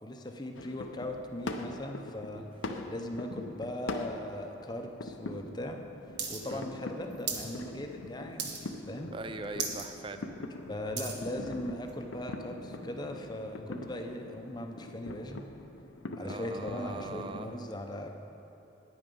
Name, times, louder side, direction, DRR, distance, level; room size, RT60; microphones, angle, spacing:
voice 1, 0.0-2.4 2.9-5.8 6.3-8.6 8.9-9.1 10.7-15.4 16.2-18.1, left 1 dB, 20° left, 4 dB, 0.6 m, -39 dB
sound 1, 0.6-17.4, left 2 dB, 85° left, 0.7 m, -43 dB
sound 2, 6.2-6.4 6.7-7.5 7.8-8.1 8.4-8.8 9.2-9.3 9.5-9.9 10.3-11.2 11.9-12.0, right 6 dB, 60° right, 1.2 m, -36 dB
voice 2, 9.1-10.2 16.2-17.5, right 3 dB, 25° right, 8 dB, 0.4 m, -41 dB
9.7 x 9.1 x 5.4 m, 2.9 s
head